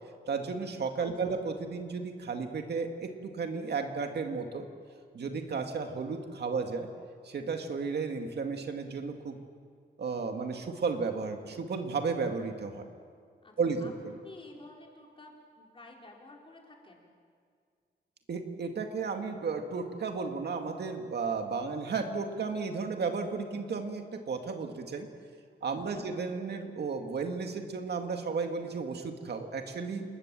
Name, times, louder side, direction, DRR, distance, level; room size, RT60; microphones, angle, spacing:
voice 1, 0.3-4.6 5.1-6.9 7.2-9.4 10.0-12.8 13.6-13.9 18.3-25.1 25.6-30.0, right 4 dB, 70° right, 4 dB, 2.1 m, -33 dB
voice 2, 1.0-1.3 13.4-13.9 14.2-17.1 25.7-26.1, left 2 dB, 30° left, -1 dB, 4.3 m, -52 dB
29.0 x 21.0 x 7.6 m, 2.1 s
wide cardioid pair, 155°, 18 cm